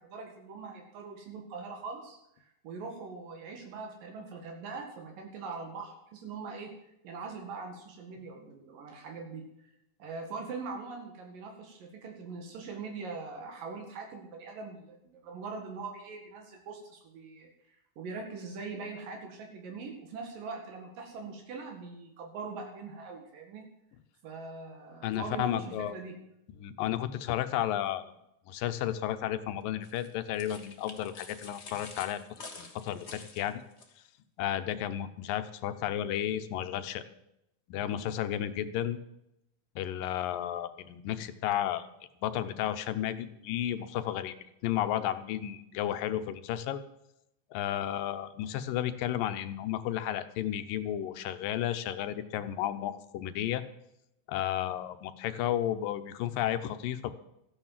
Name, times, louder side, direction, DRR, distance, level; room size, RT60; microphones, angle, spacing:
voice 1, 0.0-6.7 7.0-9.7 10.0-17.5 18.0-23.6 24.2-26.1, right 4 dB, 80° right, 2 dB, 3.6 m, -42 dB
voice 2, 25.0-25.9 26.6-28.1 28.5-32.2 32.6-33.6 34.4-37.0 37.7-39.0 39.8-41.9 42.2-44.4 44.6-46.8 47.5-53.6 54.3-57.1, left 11 dB, 85° left, 11 dB, 2.6 m, -33 dB
sound 1, 29.8-33.9, left 4 dB, 35° left, 1.1 m, -48 dB
14.5 x 9.8 x 7.4 m, 0.82 s
omnidirectional pair, 3.9 m